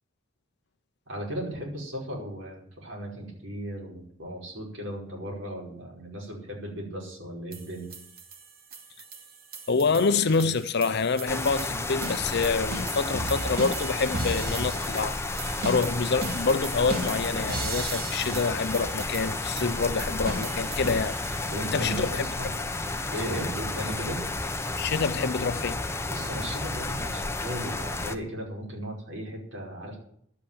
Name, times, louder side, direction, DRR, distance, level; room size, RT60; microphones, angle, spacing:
voice 1, 1.1-7.9 14.4-14.7 18.2-18.4 21.5-22.5 23.1-24.3 26.1-30.0, equal, 70° right, 5.2 m, -36 dB
sound 1, 7.5-22.1, right 2 dB, 50° right, 2.3 m, -37 dB
voice 2, 9.7-21.2 21.7-22.3 24.8-25.8, left 4 dB, 60° left, 0.6 m, -27 dB
sound 2, 11.3-28.1, left 2 dB, 15° left, 1.0 m, -32 dB
11.5 x 8.5 x 8.9 m
head